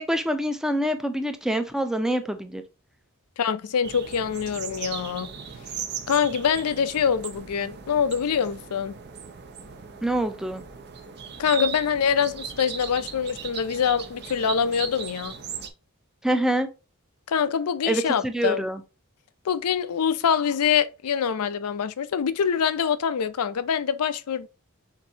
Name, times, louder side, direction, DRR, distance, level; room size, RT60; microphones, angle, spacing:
voice 1, 0.0-2.6 10.0-10.6 16.2-16.7 17.9-18.8, right 1 dB, ahead, 0.5 m, -25 dB
voice 2, 3.4-5.3 6.1-8.9 11.4-15.3 17.3-18.6 19.4-24.5, left 7 dB, 80° left, 0.5 m, -24 dB
sound 1, 3.8-15.7, right 7 dB, 50° right, 0.6 m, -38 dB
7.3 x 2.7 x 2.7 m
head